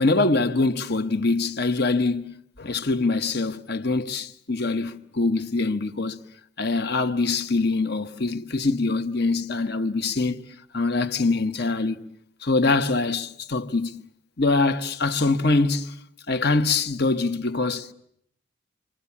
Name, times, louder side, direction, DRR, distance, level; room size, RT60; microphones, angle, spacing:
voice 1, 0.0-6.2 6.6-10.4 10.7-12.0 12.4-14.0 14.4-16.0 16.3-17.9, left 3 dB, 50° left, 1.2 m, -24 dB
28.5 x 24.5 x 8.5 m
head